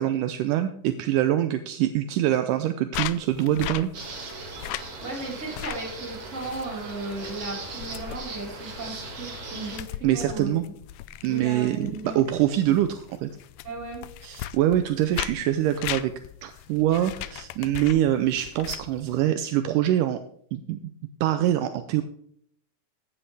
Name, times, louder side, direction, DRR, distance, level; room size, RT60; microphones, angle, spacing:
voice 1, 0.0-3.9 10.0-10.7 11.2-13.3 14.2-16.1 16.4-20.2 20.5-20.8 21.2-22.0, right 12 dB, 80° right, 9 dB, 2.1 m, -24 dB
sound 1, 2.9-19.3, left 13 dB, 90° left, 1.5 m, -39 dB
sound 2, 3.9-9.8, right 3 dB, 40° right, 2.6 m, -39 dB
voice 2, 5.0-10.6 11.3-12.2 13.6-14.1, right 2 dB, 20° right, -3 dB, 4.5 m, -36 dB
15.0 x 9.8 x 3.4 m, 0.64 s
omnidirectional pair, 3.8 m